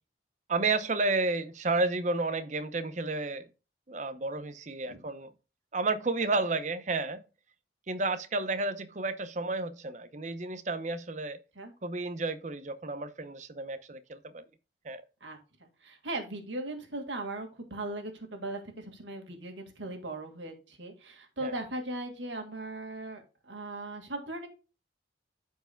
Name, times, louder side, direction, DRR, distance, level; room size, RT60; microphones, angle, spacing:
voice 1, 0.5-3.4 3.9-5.3 5.7-7.2 7.9-11.4 11.8-14.4 14.8-15.0 21.4-21.5, right 3 dB, 40° right, 0.7 m, -31 dB
voice 2, 15.8-24.5, right 2 dB, 80° right, 1.9 m, -38 dB
13.5 x 4.7 x 2.2 m
head